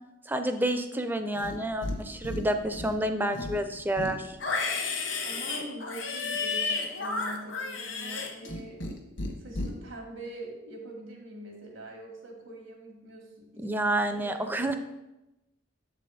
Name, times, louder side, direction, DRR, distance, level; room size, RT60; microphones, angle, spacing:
voice 1, 0.3-4.4 13.6-14.8, right 1 dB, 10° right, 8 dB, 0.4 m, -29 dB
Livestock farm animals working animals, 1.3-2.0 2.2-3.0 3.3-8.9 9.2-9.7, left 3 dB, 70° left, 1.0 m, -32 dB
voice 2, 5.2-8.8 9.4-13.8 14.2-14.8, right 1 dB, 85° right, 0 dB, 1.7 m, -43 dB
7.1 x 4.1 x 4.9 m, 0.96 s
head